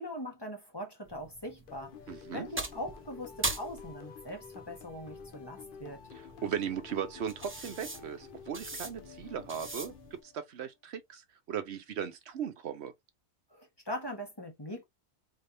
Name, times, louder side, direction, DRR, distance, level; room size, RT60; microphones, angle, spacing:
voice 1, 0.0-6.0 13.5-14.8, equal, 20° left, 1.2 m, -41 dB
sound 1, 1.1-10.2, right 2 dB, 15° right, 0.5 m, -42 dB
sound 2, 1.7-10.6, left 7 dB, 55° left, 0.8 m, -50 dB
voice 2, 2.1-2.5 6.2-9.9 10.3-11.2 11.5-12.9, right 8 dB, 70° right, 1.0 m, -37 dB
4.1 x 3.3 x 2.6 m
omnidirectional pair, 1.1 m